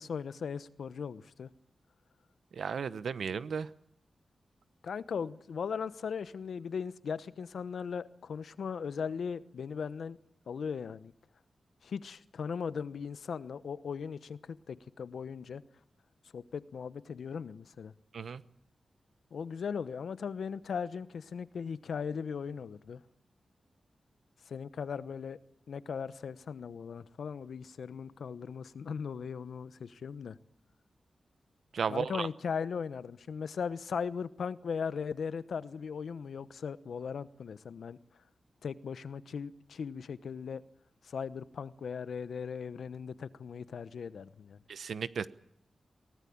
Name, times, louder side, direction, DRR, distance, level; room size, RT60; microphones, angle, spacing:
voice 1, 0.0-1.5 4.8-10.2 10.5-11.1 11.8-15.6 16.3-17.9 19.3-23.0 24.5-25.4 25.7-30.4 31.9-38.0 38.6-40.6 41.0-44.6, left 6 dB, 80° left, 1.0 m, -38 dB
voice 2, 2.5-3.7 18.1-18.4 31.7-32.3 44.7-45.3, right 6 dB, 75° right, 1.0 m, -34 dB
23.0 x 17.5 x 8.7 m
wide cardioid pair, 165°, 0 cm